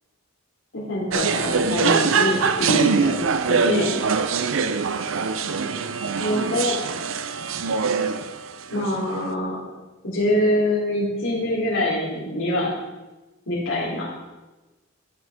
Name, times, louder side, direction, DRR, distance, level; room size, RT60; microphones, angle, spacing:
voice 1, 0.7-3.9 6.2-6.7 8.7-9.6 10.0-12.7 13.5-14.0, left 1 dB, 60° left, -5 dB, 3.4 m, -24 dB
sound 1, 1.1-9.3, right 5 dB, 60° right, 0.5 m, -23 dB
14.5 x 6.2 x 3.5 m, 1.1 s
head